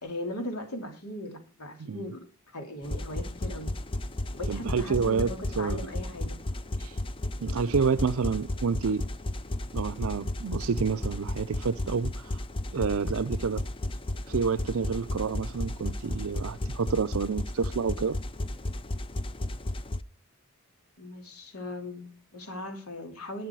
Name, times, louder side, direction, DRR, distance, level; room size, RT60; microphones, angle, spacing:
voice 1, 0.0-2.2 2.5-3.7 4.3-6.4 21.0-23.5, left 1 dB, 90° left, 3.1 m, -38 dB
sound 1, 2.8-20.0, left 1 dB, 25° left, 0.5 m, -34 dB
voice 2, 4.5-5.3 5.6-5.8 6.8-6.9 7.4-9.0 9.7-12.2 12.7-13.6 14.3-18.2, right 5 dB, 65° right, 0.5 m, -28 dB
11.5 x 9.6 x 4.7 m
head